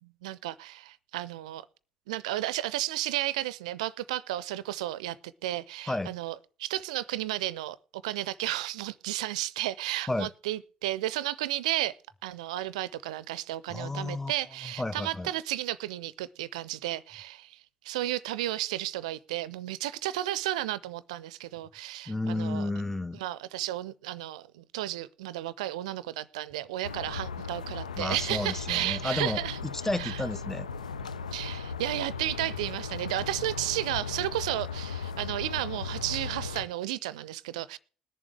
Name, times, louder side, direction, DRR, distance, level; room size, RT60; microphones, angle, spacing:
voice 1, 0.0-1.7 2.1-12.0 12.2-22.7 23.1-29.6 30.0-30.2 31.3-37.8, right 15 dB, 70° right, 0.5 m, -33 dB
voice 2, 13.7-14.3 14.6-15.3 22.1-23.2 28.0-30.7, left 2 dB, 10° left, 0.5 m, -32 dB
sound 1, 26.8-36.6, left 5 dB, 80° left, 0.4 m, -37 dB
21.0 x 7.1 x 3.3 m
figure-of-eight pair, 50°, 4 cm